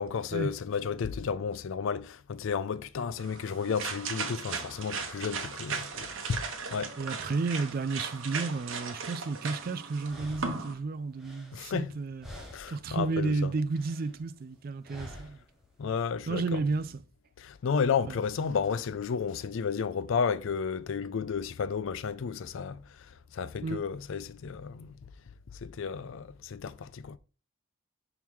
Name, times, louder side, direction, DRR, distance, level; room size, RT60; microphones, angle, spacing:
voice 1, 0.0-6.4 6.7-7.0 11.5-12.0 12.5-13.5 15.8-16.7 17.4-25.0 25.5-27.2, left 6 dB, 60° left, 0.4 m, -32 dB
sound 1, 3.2-10.7, right 5 dB, 60° right, 1.0 m, -37 dB
voice 2, 7.0-15.4 16.3-17.0 18.1-18.2 23.6-23.8, right 3 dB, 40° right, 0.3 m, -32 dB
sound 2, 9.5-9.6 10.0-12.0 12.2-12.9 13.2-14.2 14.9-15.5, equal, ahead, 1.1 m, -47 dB
5.9 x 4.6 x 3.6 m
head